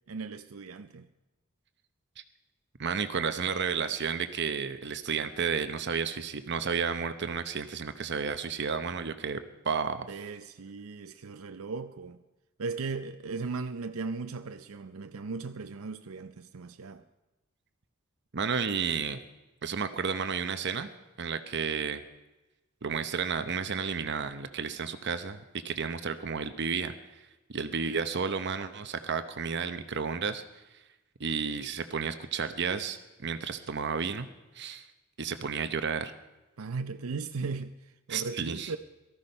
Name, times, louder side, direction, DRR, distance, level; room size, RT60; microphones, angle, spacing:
voice 1, 0.1-1.1 10.1-12.2 12.6-17.0 36.6-38.8, right 4 dB, 85° right, 0.6 m, -37 dB
voice 2, 2.8-10.1 18.3-19.2 19.6-20.9 21.2-22.0 22.8-25.4 25.6-26.9 27.5-30.4 31.2-34.3 34.5-34.8 35.2-36.1 38.1-38.7, right 6 dB, 55° right, 0.8 m, -32 dB
18.0 x 13.5 x 5.5 m
head